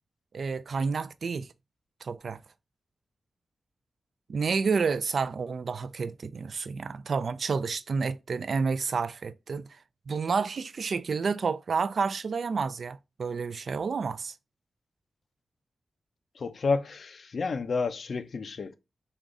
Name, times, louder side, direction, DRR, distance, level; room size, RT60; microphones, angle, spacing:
voice 1, 0.3-1.5 2.0-2.4 4.3-9.6 10.1-14.4, right 5 dB, 60° right, 0.4 m, -30 dB
voice 2, 16.4-18.7, left 4 dB, 60° left, 0.6 m, -30 dB
5.2 x 2.4 x 3.7 m
wide cardioid pair, 100°, 0 cm